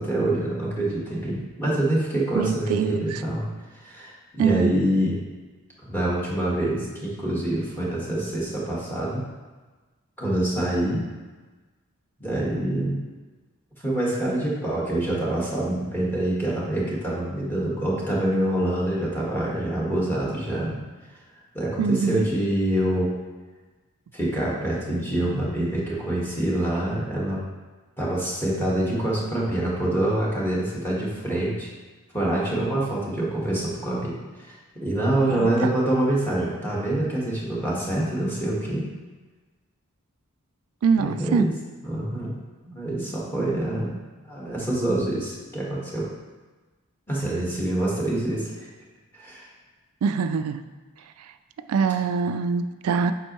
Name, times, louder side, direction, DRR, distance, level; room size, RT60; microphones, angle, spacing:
voice 1, 0.0-3.4 3.7-5.2 5.9-9.2 10.2-11.0 12.2-13.0 13.8-20.7 21.5-23.1 24.1-27.4 28.0-31.7 32.1-34.1 34.4-38.8 41.0-41.5 41.8-42.3 42.6-44.0 44.2-46.1 47.1-48.7 49.1-49.5, right 1 dB, 10° left, -6 dB, 1.6 m, -26 dB
voice 2, 2.4-3.2 4.4-4.7 21.8-22.2 35.3-35.7 40.8-41.5 50.0-50.6 51.2-51.3 51.7-53.1, right 5 dB, 85° right, 9 dB, 0.3 m, -24 dB
7.8 x 5.2 x 3.1 m, 1.3 s
head